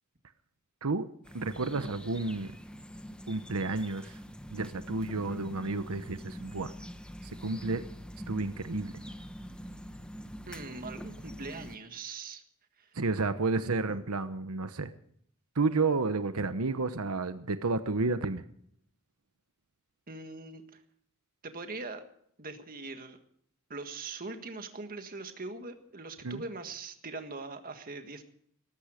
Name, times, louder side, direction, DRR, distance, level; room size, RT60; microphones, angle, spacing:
sound 1, 1.2-11.8, equal, 5° left, 1.0 m, -44 dB
voice 1, 1.3-2.5 3.3-4.2 4.5-6.7 7.2-7.8 8.3-8.9 12.9-14.9 15.5-18.4 26.2-26.4, right 3 dB, 85° right, 10 dB, 1.0 m, -31 dB
voice 2, 10.5-12.4 12.8-12.9 20.1-20.8 21.4-22.0 22.4-23.2 23.7-28.2, right 3 dB, 40° right, 7 dB, 1.7 m, -41 dB
18.5 x 14.0 x 5.0 m, 0.64 s
head